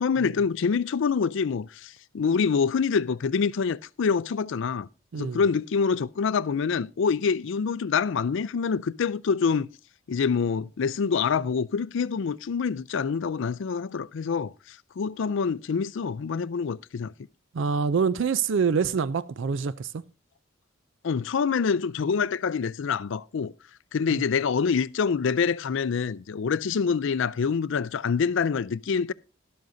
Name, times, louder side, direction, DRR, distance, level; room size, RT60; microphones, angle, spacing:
voice 1, 0.0-4.9 5.2-9.7 10.1-17.1 21.0-23.5 23.9-29.1, left 5 dB, 65° left, 0.4 m, -26 dB
voice 2, 17.5-19.9 24.1-24.2, right 5 dB, 65° right, 0.4 m, -25 dB
12.5 x 12.0 x 2.6 m
head